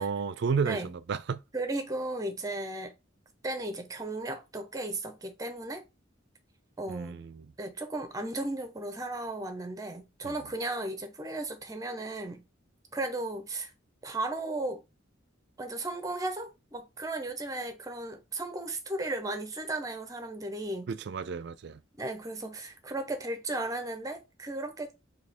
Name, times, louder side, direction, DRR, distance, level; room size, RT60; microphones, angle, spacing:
voice 1, 0.0-1.4 6.9-7.5 10.2-10.3 20.9-21.8, right 5 dB, 55° right, 0.3 m, -32 dB
voice 2, 0.6-1.0 1.5-3.0 3.4-5.8 6.8-7.2 7.6-12.4 12.9-13.7 14.0-14.8 15.6-20.9 22.0-24.9, right 2 dB, 15° right, 0.6 m, -35 dB
3.4 x 2.8 x 4.2 m
head